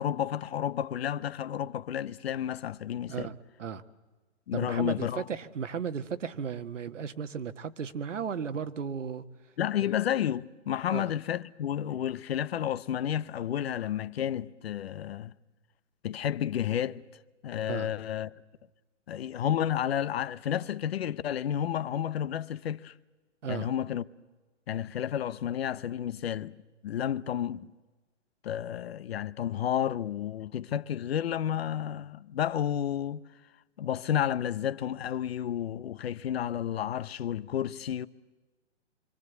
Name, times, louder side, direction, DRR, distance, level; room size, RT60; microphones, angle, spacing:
voice 1, 0.0-3.3 4.5-5.2 9.6-15.3 16.0-17.0 17.4-18.3 19.1-22.9 23.5-24.0 24.7-26.6 26.8-27.7 28.4-33.2 33.8-38.1, left 10 dB, 55° left, 0.9 m, -31 dB
voice 2, 3.1-3.8 4.5-9.2 10.9-11.0 17.7-17.9 23.4-23.7, right 7 dB, 85° right, 1.6 m, -35 dB
26.5 x 25.0 x 8.2 m
hypercardioid pair, 150°, 36 cm